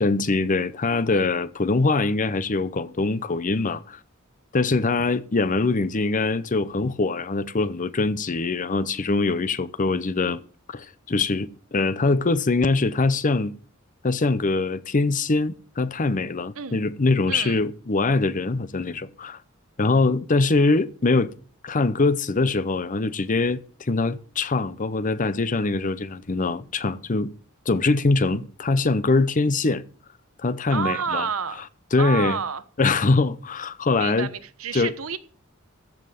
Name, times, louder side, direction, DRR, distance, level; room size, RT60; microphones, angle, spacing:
voice 1, 0.0-4.0 4.5-10.4 10.7-13.5 14.0-19.4 19.8-21.3 21.6-27.3 27.7-29.8 30.4-31.3 31.9-32.4 32.8-34.3 34.7-34.9, left 3 dB, 40° left, 0.7 m, -23 dB
voice 2, 17.3-17.6 30.7-31.6 32.0-32.6 34.0-35.2, right 6 dB, 90° right, 1.1 m, -29 dB
14.5 x 5.6 x 7.6 m
head